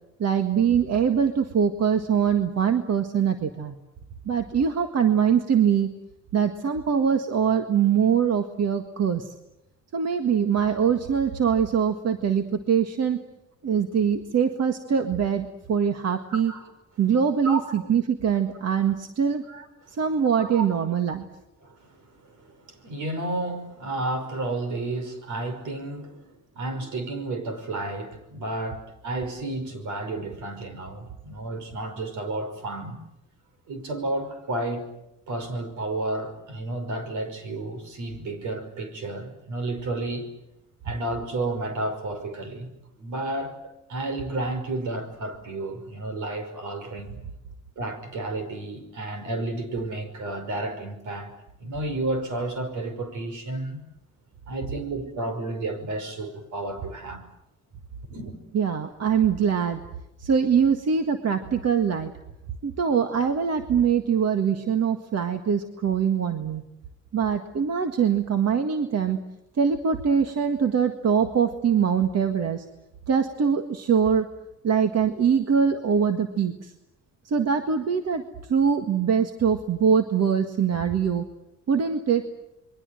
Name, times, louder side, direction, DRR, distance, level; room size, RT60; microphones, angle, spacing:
voice 1, 0.2-3.8 4.3-5.9 6.3-9.3 9.9-13.2 13.6-16.5 17.0-19.4 19.9-21.2 58.5-59.8 60.2-62.1 62.6-66.6 67.1-69.2 69.6-72.6 73.1-74.3 74.6-76.7 77.3-78.2 78.5-81.2 81.7-82.2, right 7 dB, 55° right, 1.8 m, -23 dB
voice 2, 17.4-17.9 19.5-19.6 20.4-20.7 21.6-33.0 33.7-34.9 35.3-40.3 40.8-42.7 43.0-43.6 43.9-47.2 47.8-51.3 51.6-53.8 54.5-57.3 58.1-58.3, right 2 dB, 80° right, 5.5 m, -32 dB
27.5 x 22.5 x 7.8 m
cardioid pair, 90°, 30 cm